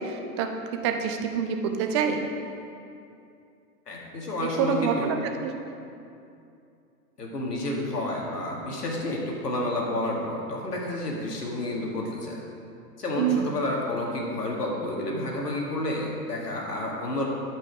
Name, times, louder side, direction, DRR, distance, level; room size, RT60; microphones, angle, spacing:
voice 1, 0.0-2.3 4.6-5.5 13.2-13.5, right 7 dB, 20° right, 5 dB, 0.4 m, -27 dB
voice 2, 3.9-5.1 7.2-12.4 13.0-17.3, left 1 dB, 75° left, -2 dB, 2.0 m, -30 dB
12.0 x 5.5 x 5.0 m, 2.6 s
figure-of-eight pair, 100°, 48 cm